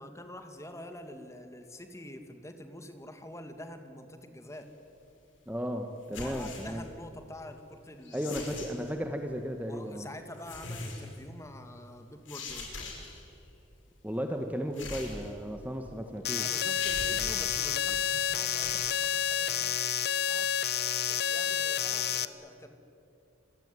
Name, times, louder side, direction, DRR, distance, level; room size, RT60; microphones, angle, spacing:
voice 1, 0.0-4.7 6.1-8.2 9.7-12.7 16.4-20.5 21.0-22.8, left 1 dB, 15° left, 7 dB, 2.0 m, -46 dB
voice 2, 5.5-6.8 8.1-10.1 14.0-16.5, equal, 10° right, 5 dB, 1.3 m, -35 dB
sound 1, 6.0-6.8 8.0-8.9 10.3-11.2 12.3-13.3 14.7-15.7 16.2-16.3 16.7-17.6 18.4-19.0, left 3 dB, 80° left, 6.4 m, -41 dB
sound 2, 16.2-22.2, left 9 dB, 55° left, 1.0 m, -29 dB
26.0 x 22.0 x 9.7 m, 2.6 s
head